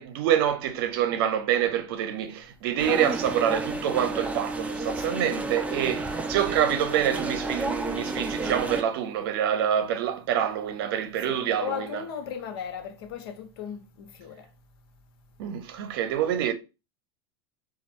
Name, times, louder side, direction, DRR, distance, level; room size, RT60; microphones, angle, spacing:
voice 1, 0.0-12.0 15.4-16.5, right 10 dB, 70° right, 0.7 m, -26 dB
sound 1, 2.8-8.8, right 2 dB, 10° right, 0.5 m, -31 dB
voice 2, 11.2-14.4, left 8 dB, 75° left, 1.0 m, -36 dB
4.3 x 2.4 x 4.4 m
supercardioid pair, 120°, 13 cm